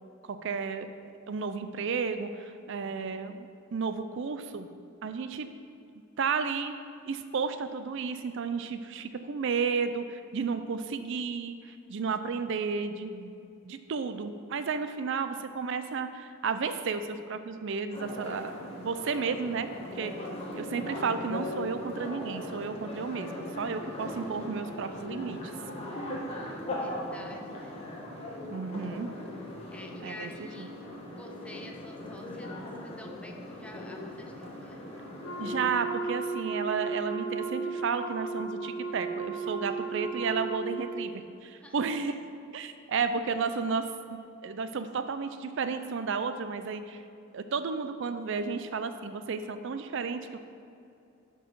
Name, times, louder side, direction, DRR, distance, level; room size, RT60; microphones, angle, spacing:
voice 1, 0.2-4.7 5.0-5.5 6.2-6.7 7.1-13.3 13.6-18.5 18.8-19.7 19.9-20.1 20.6-25.5 28.5-29.1 30.0-30.3 30.6-30.7 35.4-42.2 42.5-43.8 44.1-47.0 47.3-50.4, right 5 dB, 55° right, 10 dB, 0.4 m, -32 dB
sound 1, 17.9-35.7, left 1 dB, 30° left, 1.3 m, -39 dB
voice 2, 26.7-27.8 29.7-30.7 31.1-34.8 41.5-41.9, left 1 dB, 5° left, 2 dB, 0.6 m, -49 dB
Wind instrument woodwind instrument, 35.2-41.0, right 4 dB, 75° left, 0.9 m, -35 dB
11.5 x 4.6 x 4.6 m, 2.6 s
head